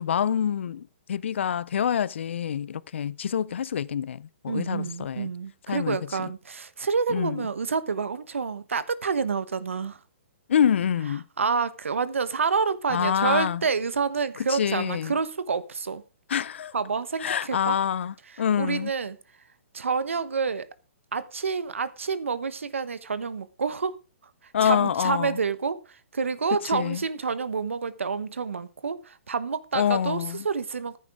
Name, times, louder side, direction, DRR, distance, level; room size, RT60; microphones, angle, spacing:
voice 1, 0.0-5.3 5.7-6.0 7.1-7.4 10.5-11.2 12.9-13.6 14.5-15.1 16.3-16.7 17.2-18.9 24.5-25.4 26.7-27.0 29.7-30.4, left 8 dB, 70° left, 0.5 m, -26 dB
voice 2, 4.5-10.0 11.4-16.0 16.7-17.8 18.3-19.2 19.7-20.7 21.1-24.0 24.4-31.0, right 5 dB, 85° right, 1.1 m, -28 dB
14.0 x 10.5 x 3.6 m
hypercardioid pair, 135°, 7 cm